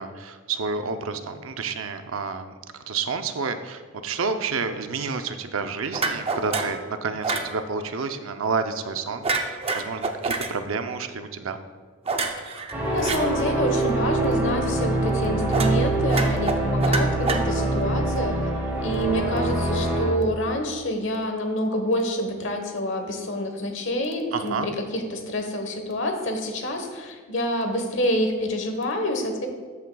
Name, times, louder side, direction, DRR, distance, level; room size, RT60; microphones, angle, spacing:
voice 1, 0.0-2.5 2.9-11.6 24.3-24.7, right 4 dB, 80° right, 8 dB, 0.6 m, -30 dB
sound 1, 5.9-6.8 7.2-7.5 9.2-10.5 12.1-13.2 15.5-15.8 16.1-17.8, right 3 dB, 30° right, 0.6 m, -27 dB
voice 2, 12.4-18.4 18.8-29.5, left 1 dB, 65° left, 5 dB, 1.2 m, -27 dB
sound 2, 12.7-20.1, right 2 dB, 10° right, 2.7 m, -24 dB
13.5 x 8.3 x 2.3 m, 1.6 s
head